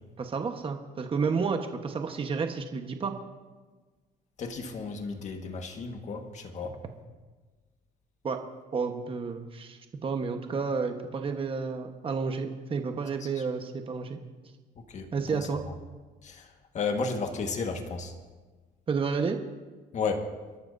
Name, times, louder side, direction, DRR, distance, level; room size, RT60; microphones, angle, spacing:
voice 1, 0.2-3.1 8.2-8.4 8.7-14.2 15.1-15.6 18.9-19.4, right 5 dB, 30° right, 5 dB, 1.2 m, -31 dB
voice 2, 4.4-6.7 14.9-15.4 16.2-16.3 16.7-18.1 19.9-20.2, left 4 dB, 45° left, 4 dB, 1.6 m, -33 dB
29.5 x 11.5 x 2.7 m, 1.3 s
cardioid pair, 110°, 17 cm